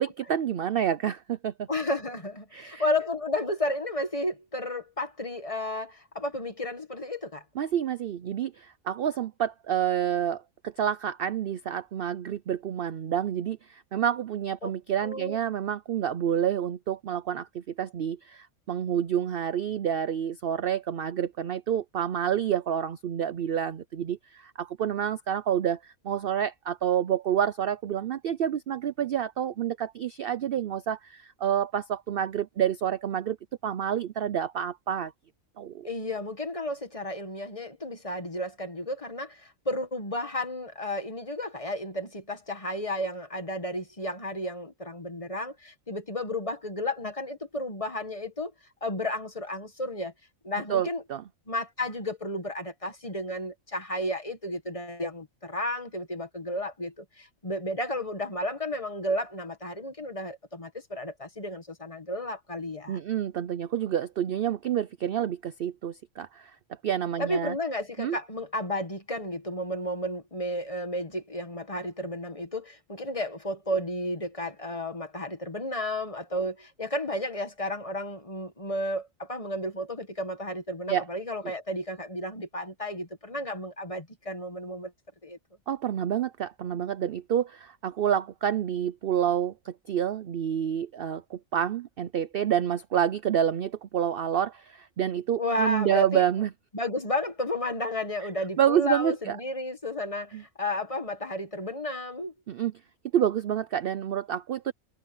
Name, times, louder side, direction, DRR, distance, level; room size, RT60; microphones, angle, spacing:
voice 1, 0.0-1.7 2.5-2.8 7.6-33.4 33.6-35.1 35.6-35.9 50.7-51.2 62.9-66.5 66.8-67.5 68.0-68.2 80.9-81.0 85.7-96.5 98.6-99.4 100.3-100.4 102.5-102.7 103.1-104.7, right 9 dB, 60° right, 0.6 m, -28 dB
voice 2, 1.7-7.4 14.6-14.7 15.0-15.4 35.8-48.5 48.8-50.1 50.4-51.0 51.5-63.0 67.2-84.9 85.2-85.4 95.4-96.2 96.7-102.3, left 1 dB, 25° left, 1.7 m, -32 dB
omnidirectional pair, 1.4 m